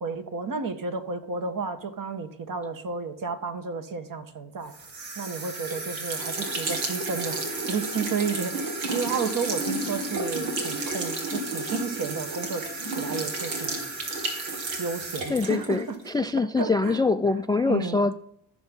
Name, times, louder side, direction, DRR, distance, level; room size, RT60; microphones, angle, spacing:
voice 1, 0.0-4.7 5.2-13.8 14.8-17.0 17.6-18.0, right 5 dB, 45° right, 8 dB, 1.4 m, -32 dB
sound 1, 4.7-16.1, right 2 dB, 85° right, 2.1 m, -31 dB
voice 2, 15.3-18.1, left 3 dB, 10° left, 13 dB, 0.3 m, -24 dB
14.5 x 6.2 x 3.8 m, 0.74 s
supercardioid pair, 60°, 45 cm